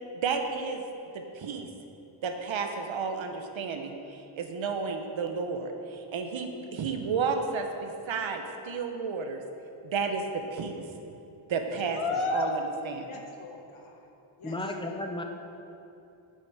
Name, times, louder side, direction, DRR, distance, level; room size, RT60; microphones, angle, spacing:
voice 1, 0.1-0.8 1.1-1.7 2.2-9.4 9.8-10.8 11.5-12.0 12.3-13.2, right 5 dB, 75° right, 5 dB, 0.9 m, -32 dB
voice 2, 12.0-12.6 13.1-14.0 14.4-14.9, left 3 dB, 90° left, 1 dB, 1.4 m, -33 dB
voice 3, 14.4-15.2, left 1 dB, 10° left, 3 dB, 0.7 m, -33 dB
8.2 x 7.3 x 4.8 m, 2.8 s
wide cardioid pair, 120°, 47 cm